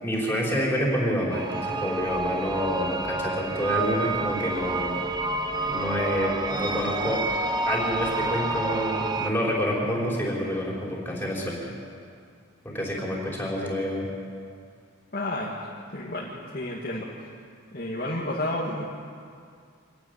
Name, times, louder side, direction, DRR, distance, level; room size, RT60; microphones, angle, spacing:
voice 1, 0.0-5.0 5.6-7.2 7.7-11.6 12.6-14.1, equal, 10° left, -4 dB, 5.0 m, -28 dB
sound 1, 1.3-9.3, right 2 dB, 20° right, 1.0 m, -29 dB
voice 2, 15.1-15.5 15.9-17.1 17.7-18.8, left 1 dB, 45° left, -4 dB, 2.1 m, -31 dB
26.0 x 12.5 x 9.9 m, 2.2 s
head